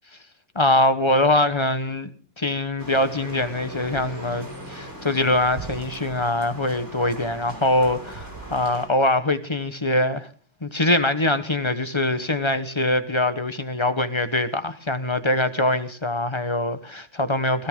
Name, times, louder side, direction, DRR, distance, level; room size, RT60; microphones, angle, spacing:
voice 1, 0.5-2.1 2.4-10.3 10.6-17.7, left 1 dB, 20° left, 0.8 m, -23 dB
sound 1, 2.8-8.9, right 1 dB, 35° right, 6.3 m, -38 dB
20.0 x 17.0 x 3.8 m
omnidirectional pair, 2.0 m